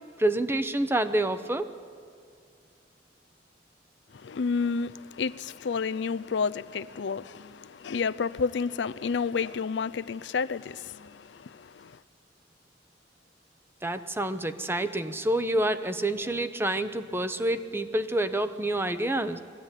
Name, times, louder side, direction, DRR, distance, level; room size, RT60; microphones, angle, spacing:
voice 1, 0.2-1.7 13.8-19.4, right 1 dB, 15° right, 0.8 m, -28 dB
voice 2, 4.1-12.0, left 5 dB, 80° left, 0.5 m, -30 dB
22.0 x 15.0 x 9.8 m
head